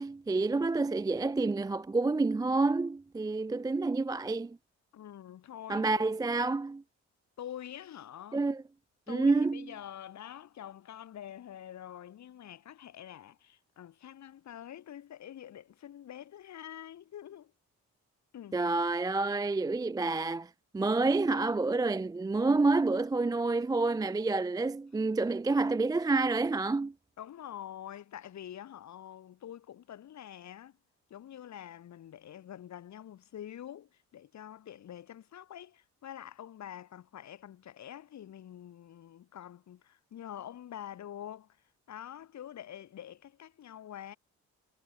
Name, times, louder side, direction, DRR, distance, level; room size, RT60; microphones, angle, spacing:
voice 1, 0.0-4.6 5.7-6.8 8.3-8.6 9.1-9.7 18.5-26.9, right 3 dB, 15° right, 0.4 m, -28 dB
voice 2, 4.9-6.0 7.4-8.4 9.1-17.5 18.3-18.6 27.2-30.7 31.1-41.5 41.9-44.2, left 10 dB, 65° left, 3.2 m, -46 dB
cardioid pair, 90°, 30 cm